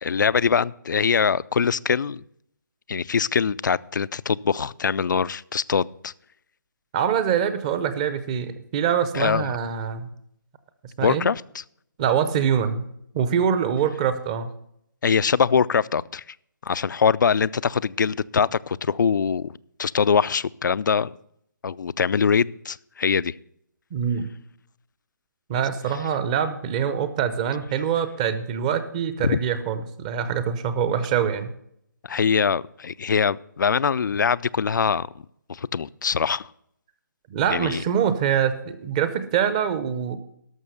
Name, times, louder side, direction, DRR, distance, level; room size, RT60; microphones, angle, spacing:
voice 1, 0.0-2.2 2.9-6.1 9.1-9.6 11.0-11.4 15.0-16.2 16.6-19.5 19.8-21.1 21.6-23.3 29.2-29.4 32.1-35.1 35.5-36.5 37.5-37.8, left 6 dB, 70° left, 19 dB, 0.4 m, -23 dB
voice 2, 6.9-10.1 11.0-11.3 12.0-12.9 13.1-14.5 23.9-24.3 25.5-31.5 37.3-40.2, right 8 dB, 20° right, 12 dB, 0.7 m, -24 dB
12.5 x 6.0 x 6.5 m, 0.73 s
hypercardioid pair, 160°, 10 cm